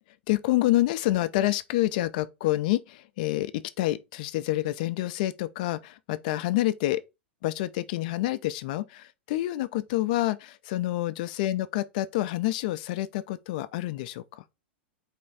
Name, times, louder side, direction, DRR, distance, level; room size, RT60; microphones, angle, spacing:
voice 1, 0.3-7.0 7.4-14.4, left 16 dB, 45° left, 0.4 m, -28 dB
4.4 x 3.0 x 3.9 m
figure-of-eight pair, 95°, 6 cm